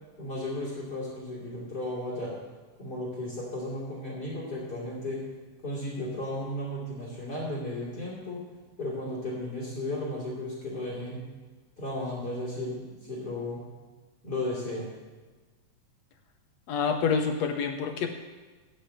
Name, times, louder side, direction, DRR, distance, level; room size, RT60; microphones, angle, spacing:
voice 1, 0.2-2.4 2.8-5.2 5.6-8.4 8.8-11.2 11.8-13.6 14.2-14.9, left 1 dB, 30° left, -5 dB, 3.1 m, -34 dB
voice 2, 16.7-18.1, left 5 dB, 75° left, 6 dB, 1.7 m, -27 dB
14.5 x 5.7 x 8.7 m, 1.3 s
omnidirectional pair, 3.6 m